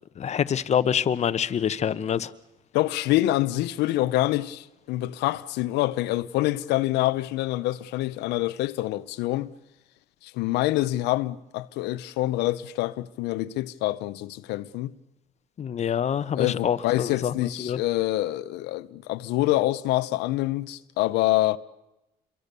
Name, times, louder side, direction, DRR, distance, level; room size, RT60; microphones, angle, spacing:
voice 1, 0.2-2.3 15.6-17.3 17.6-17.8, left 8 dB, 40° left, 1.0 m, -26 dB
voice 2, 2.7-9.5 10.2-14.9 16.3-21.6, left 16 dB, 90° left, 0.8 m, -26 dB
27.5 x 22.5 x 6.8 m
cardioid pair, 110°, 17 cm